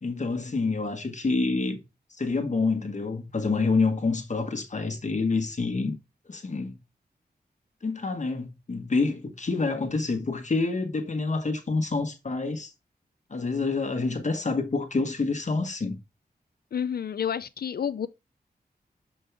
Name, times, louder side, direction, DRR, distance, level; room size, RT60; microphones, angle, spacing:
voice 1, 0.0-1.8 2.2-6.0 6.3-6.8 7.8-12.7 13.3-16.0, left 3 dB, 45° left, 1.2 m, -27 dB
voice 2, 16.7-18.1, left 8 dB, 70° left, 0.4 m, -29 dB
7.0 x 5.3 x 3.3 m
wide cardioid pair, 100°, 17 cm